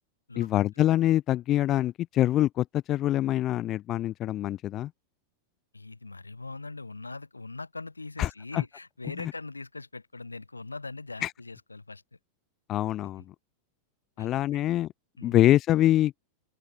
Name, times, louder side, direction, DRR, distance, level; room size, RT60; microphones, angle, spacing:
voice 1, 0.4-4.9 8.2-8.6 11.2-11.3 12.7-13.2 14.2-14.9 15.2-16.1, left 13 dB, 35° left, 0.5 m, -25 dB
voice 2, 5.7-12.0 14.2-14.6 15.2-15.4, left 3 dB, 80° left, 5.9 m, -41 dB
figure-of-eight pair, 90°, 0 cm